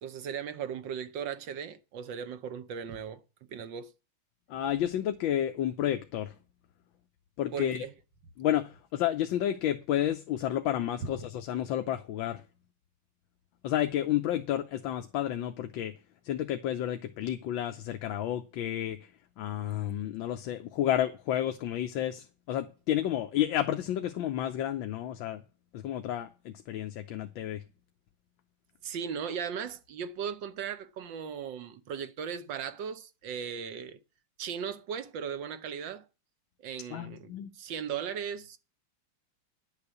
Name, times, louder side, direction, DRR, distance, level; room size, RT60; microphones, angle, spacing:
voice 1, 0.0-3.2 3.5-3.9 7.5-7.9 28.8-34.0 34.4-36.0 36.6-38.6, right 7 dB, 65° right, 1.5 m, -37 dB
voice 2, 4.5-6.3 7.4-7.9 8.4-12.4 13.6-16.0 16.2-19.1 19.4-25.4 25.7-27.6 36.9-37.5, left 11 dB, 75° left, 1.5 m, -31 dB
10.5 x 6.8 x 8.2 m
omnidirectional pair, 2.2 m